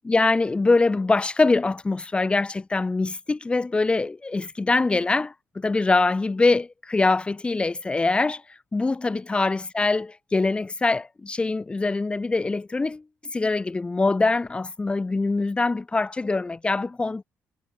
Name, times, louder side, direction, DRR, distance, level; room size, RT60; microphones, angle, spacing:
voice 1, 0.0-8.4 8.7-13.0 13.3-17.2, left 3 dB, 20° left, 1.2 m, -23 dB
cardioid pair, 95°, 5 cm